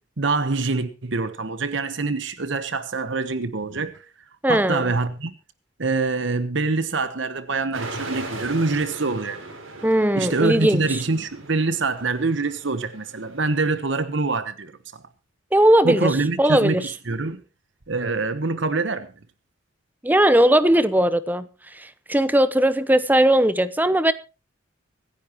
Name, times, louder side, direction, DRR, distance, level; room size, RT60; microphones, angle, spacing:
voice 1, 0.2-4.0 4.5-5.3 5.8-9.4 10.1-15.0 15.8-17.4 17.9-19.1, right 3 dB, 60° right, 1.1 m, -25 dB
voice 2, 4.4-4.9 9.8-11.0 15.5-16.9 20.0-24.1, right 1 dB, 10° right, 0.7 m, -19 dB
sound 1, 7.7-13.8, right 2 dB, 80° right, 4.6 m, -38 dB
25.0 x 10.5 x 3.0 m
head